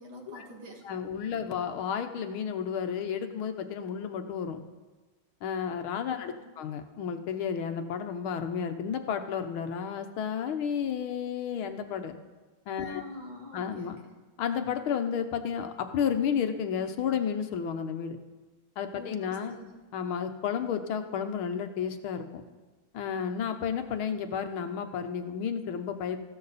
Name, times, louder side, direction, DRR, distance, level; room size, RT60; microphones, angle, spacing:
voice 1, 0.0-0.9 6.1-6.5 12.8-13.9 18.9-19.8, left 1 dB, 75° right, 0 dB, 3.1 m, -46 dB
voice 2, 0.8-4.6 5.4-12.2 12.7-13.0 13.5-14.0 14.4-18.2 18.8-19.5 19.9-22.4 22.9-26.2, left 7 dB, 90° left, 7 dB, 1.9 m, -32 dB
19.5 x 15.0 x 4.1 m, 1.3 s
omnidirectional pair, 2.2 m